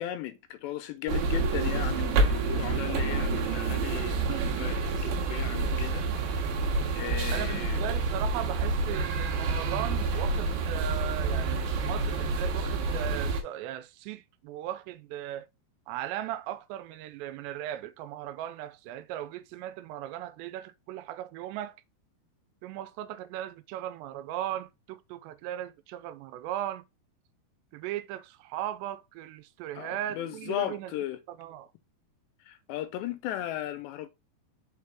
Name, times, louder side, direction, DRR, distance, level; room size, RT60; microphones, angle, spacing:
voice 1, 0.0-6.4 6.9-7.8 29.8-31.2 32.5-34.1, left 13 dB, 90° left, 3.1 m, -36 dB
sound 1, 1.1-13.4, right 3 dB, 65° right, 2.9 m, -28 dB
voice 2, 7.3-15.5 15.9-21.8 22.6-26.8 27.7-30.9 31.3-31.7, right 12 dB, 90° right, 2.8 m, -37 dB
6.3 x 4.7 x 3.5 m
omnidirectional pair, 4.9 m